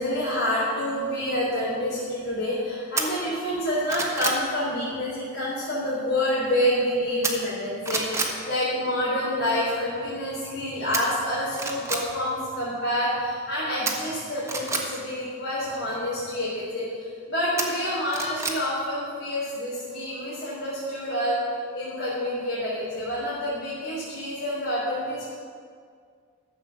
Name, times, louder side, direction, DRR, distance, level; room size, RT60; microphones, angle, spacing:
voice 1, 0.0-21.4 21.7-25.3, left 1 dB, 70° left, -10 dB, 3.7 m, -28 dB
sound 1, 3.0-3.1 3.6-4.4 7.2-7.6 7.8-8.3 10.9-11.0 11.5-12.0 13.9-14.8 17.6-18.6 19.0-19.1, right 3 dB, 15° right, 1.2 m, -28 dB
13.5 x 7.5 x 7.0 m, 2.1 s
head